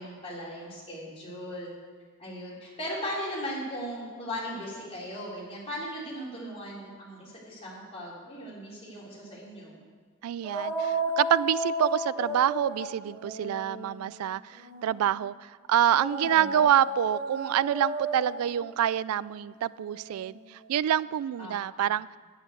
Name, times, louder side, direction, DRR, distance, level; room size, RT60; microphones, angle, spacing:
voice 1, 0.0-1.7 2.2-9.8 16.2-16.5 21.4-21.5, equal, 30° left, -6 dB, 3.5 m, -38 dB
voice 2, 10.2-22.2, right 10 dB, 90° right, 18 dB, 0.3 m, -27 dB
sound 1, 10.4-15.1 15.9-20.6, right 1 dB, 5° left, 4.1 m, -35 dB
8.9 x 8.6 x 8.0 m, 1.5 s
head